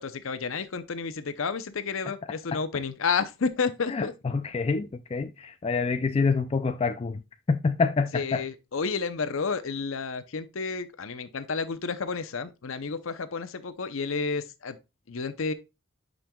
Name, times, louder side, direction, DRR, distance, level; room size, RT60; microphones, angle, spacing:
voice 1, 0.0-4.1 8.1-14.8 15.1-15.5, left 5 dB, 65° left, 0.7 m, -31 dB
voice 2, 3.9-7.2 7.5-8.4, left 4 dB, 30° left, 0.3 m, -27 dB
8.7 x 5.2 x 2.3 m
head